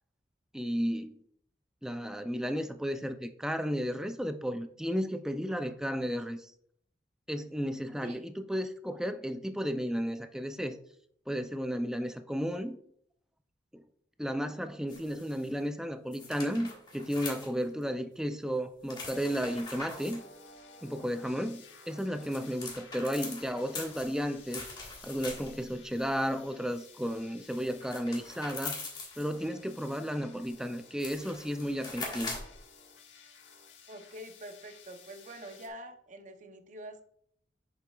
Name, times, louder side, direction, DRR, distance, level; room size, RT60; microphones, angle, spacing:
voice 1, 0.5-1.2 1.8-6.5 7.3-10.8 11.3-12.8 13.7-13.8 14.2-20.2 20.8-24.6 25.0-28.8 29.2-32.4, equal, 5° right, 0.4 m, -33 dB
sound 1, 14.9-15.5 16.1-17.8 18.8-20.2 21.8-25.7 27.5-29.5 30.5-30.6 30.9-32.6, left 3 dB, 25° left, 1.6 m, -42 dB
sound 2, 19.0-35.7, left 5 dB, 90° left, 1.1 m, -55 dB
voice 2, 33.9-37.0, right 1 dB, 40° right, 0.7 m, -45 dB
7.7 x 6.8 x 2.3 m
head